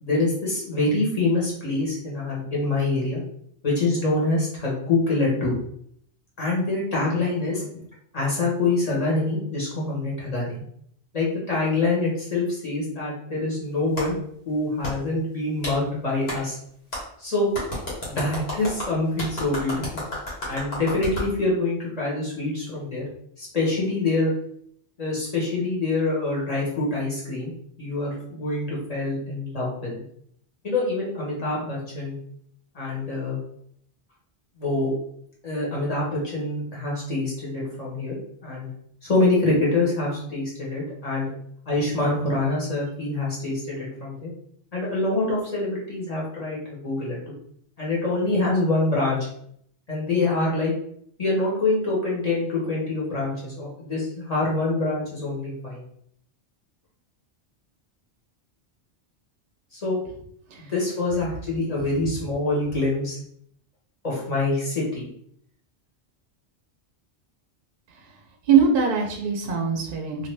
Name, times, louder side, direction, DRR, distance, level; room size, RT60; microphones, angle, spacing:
voice 1, 0.0-3.2 3.6-5.6 6.4-7.8 8.1-10.6 11.1-14.2 14.4-16.6 17.2-17.5 18.0-19.8 20.5-23.1 23.4-24.3 25.0-27.5 27.8-29.9 30.6-32.2 32.7-33.4 34.6-34.9 35.4-38.2 38.4-38.7 39.0-41.3 41.6-44.3 44.7-47.2 47.8-49.2 49.9-50.7 51.2-55.8 59.7-60.0 60.6-63.2 64.0-65.1, left 2 dB, 35° left, -5 dB, 1.2 m, -25 dB
Clapping, 14.0-14.1 14.8-14.9 15.6-15.8 16.3-16.4 16.9-17.0 17.5-21.3, left 1 dB, 60° left, 1.3 m, -31 dB
voice 2, 68.5-70.3, right 6 dB, 55° right, 1 dB, 0.6 m, -21 dB
2.6 x 2.5 x 3.2 m, 0.67 s
omnidirectional pair, 1.2 m